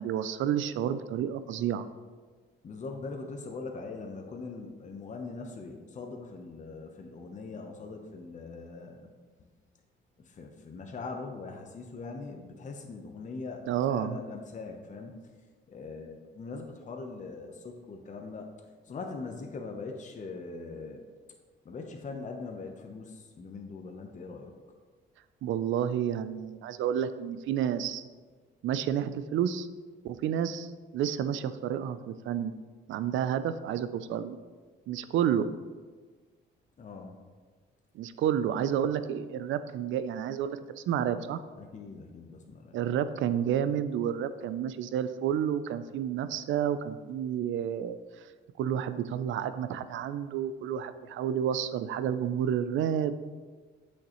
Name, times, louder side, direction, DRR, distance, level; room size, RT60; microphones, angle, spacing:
voice 1, 0.0-1.9 13.7-14.2 25.4-28.0 28.6-29.7 30.0-32.5 32.9-34.4 34.9-35.5 37.9-41.4 42.7-48.0 48.6-53.2, right 9 dB, 75° right, 12 dB, 0.5 m, -30 dB
voice 2, 2.6-9.1 9.4-9.5 10.2-13.6 13.9-15.1 15.7-18.5 18.8-21.0 21.6-24.5 36.8-37.2 41.6-42.8, left 3 dB, 40° left, 2 dB, 0.9 m, -41 dB
8.4 x 6.5 x 3.1 m, 1.4 s
cardioid pair, 90°, 20 cm